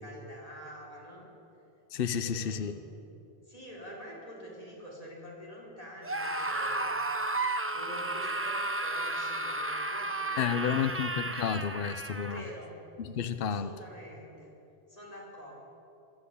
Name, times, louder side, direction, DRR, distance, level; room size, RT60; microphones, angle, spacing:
voice 1, 0.0-1.3 2.1-3.0 3.4-6.9 7.7-10.9 12.2-12.7 13.5-14.5 14.9-15.5, equal, 35° left, -3 dB, 4.8 m, -47 dB
voice 2, 1.9-2.7 10.4-12.4 13.0-13.7, left 7 dB, 65° left, 11 dB, 0.9 m, -31 dB
Screaming, 6.0-12.5, right 2 dB, 15° right, 0.7 m, -33 dB
24.0 x 13.0 x 8.4 m, 2.8 s
omnidirectional pair, 1.0 m